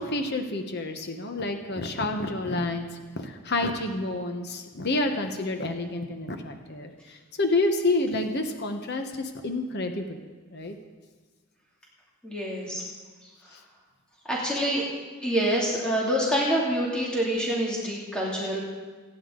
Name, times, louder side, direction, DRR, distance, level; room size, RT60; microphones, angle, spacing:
voice 1, 0.0-10.2 10.5-10.7 13.5-13.6, left 2 dB, 50° left, 5 dB, 1.1 m, -29 dB
voice 2, 12.2-12.8 14.3-14.8 15.2-18.6, equal, 5° left, -5 dB, 2.7 m, -26 dB
25.0 x 10.0 x 3.9 m, 1.4 s
head